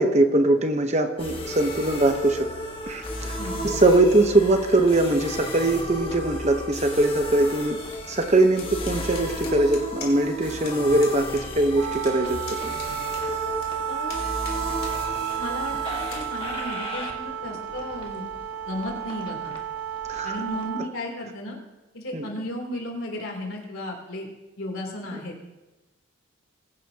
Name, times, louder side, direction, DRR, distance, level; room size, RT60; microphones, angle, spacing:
voice 1, 0.0-2.5 2.9-3.4 3.6-7.8 8.1-12.8 20.1-20.3 22.1-22.2, right 2 dB, 30° right, 6 dB, 0.9 m, -21 dB
sound 1, 1.2-20.6, left 1 dB, 25° left, 1.6 m, -35 dB
voice 2, 3.4-3.8 13.9-14.2 15.4-18.2 18.7-19.5 20.2-21.6 21.9-24.3 24.6-25.3, left 1 dB, 80° left, 1 dB, 3.2 m, -34 dB
sound 2, 8.6-10.4 10.7-10.8 11.0-11.5 11.7-13.7 14.1-15.0 15.4-15.5 16.0-16.2, left 6 dB, 45° left, 2.8 m, -41 dB
Wind instrument woodwind instrument, 11.7-20.9, right 10 dB, 75° right, 0.7 m, -32 dB
21.0 x 10.5 x 2.9 m, 1.1 s
head